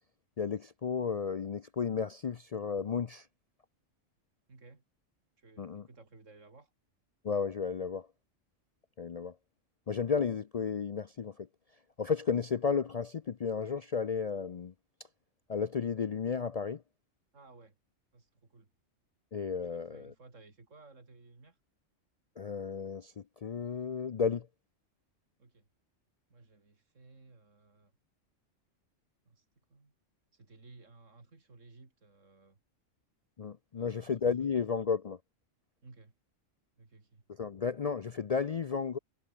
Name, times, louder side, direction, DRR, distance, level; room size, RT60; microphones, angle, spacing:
voice 1, 0.4-3.3 5.6-5.8 7.2-8.1 9.0-9.4 9.9-11.5 12.0-14.7 15.5-16.8 19.3-20.1 22.4-24.5 33.4-35.2 37.3-39.0, left 6 dB, 55° left, 0.4 m, -33 dB
voice 2, 4.5-4.8 5.4-6.7 17.3-17.8 18.1-18.7 19.7-21.6 25.4-25.7 26.3-27.9 29.3-29.9 30.3-32.6 33.7-34.6 35.8-36.1 36.8-37.2, right 3 dB, 70° right, 3.7 m, -57 dB
omnidirectional pair, 1.3 m